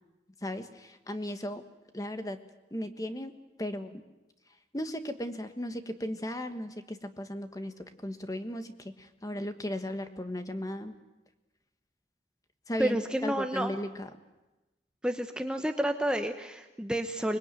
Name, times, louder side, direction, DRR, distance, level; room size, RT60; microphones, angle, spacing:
voice 1, 0.4-1.6 1.9-2.4 2.7-3.3 3.6-4.0 4.7-10.9 12.7-14.1, left 1 dB, 20° left, 8 dB, 1.4 m, -36 dB
voice 2, 12.8-13.7 15.0-17.4, right 1 dB, 5° right, 6 dB, 0.9 m, -30 dB
24.5 x 21.5 x 9.1 m, 1.0 s
head